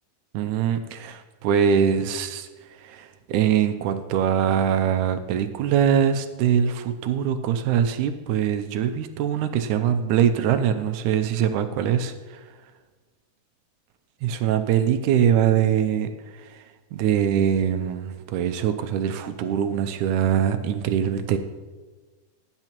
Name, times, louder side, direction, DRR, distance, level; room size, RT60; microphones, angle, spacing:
voice 1, 0.3-2.5 2.8-12.4 14.2-16.1 16.4-16.6 16.9-21.4, right 8 dB, 80° right, 8 dB, 1.9 m, -23 dB
18.5 x 8.9 x 3.0 m, 1.3 s
omnidirectional pair, 4.0 m